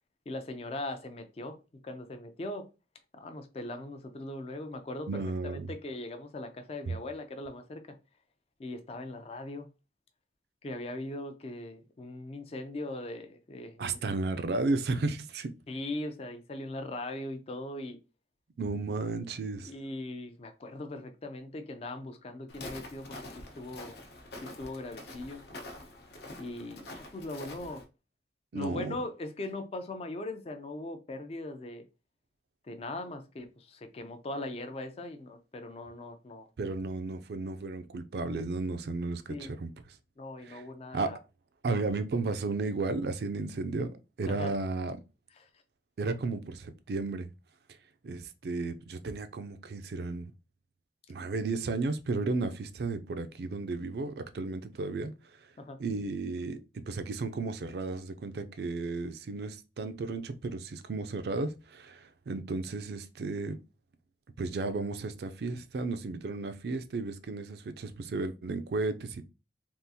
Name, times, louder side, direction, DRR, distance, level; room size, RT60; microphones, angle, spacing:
voice 1, 0.3-1.6 1.8-2.7 3.2-5.2 5.7-8.0 8.6-9.7 10.6-14.0 15.7-18.0 19.6-23.9 24.4-25.4 26.4-27.8 28.5-31.8 32.6-36.5 39.3-39.5 40.2-41.2 44.3-44.5 45.4-45.5 55.6-55.8, left 2 dB, 35° left, 0.4 m, -40 dB
voice 2, 5.1-5.7 6.9-7.0 13.8-15.5 18.6-19.7 28.5-29.0 36.6-39.7 40.4-40.6 40.9-41.1 41.6-45.0 46.0-47.3 48.0-50.3 51.1-55.1 55.4-55.5 55.8-63.6 64.4-69.2, right 3 dB, 60° right, 0.4 m, -34 dB
Walk footsteps, 22.5-27.8, left 2 dB, 65° left, 0.8 m, -46 dB
3.6 x 2.4 x 2.7 m
head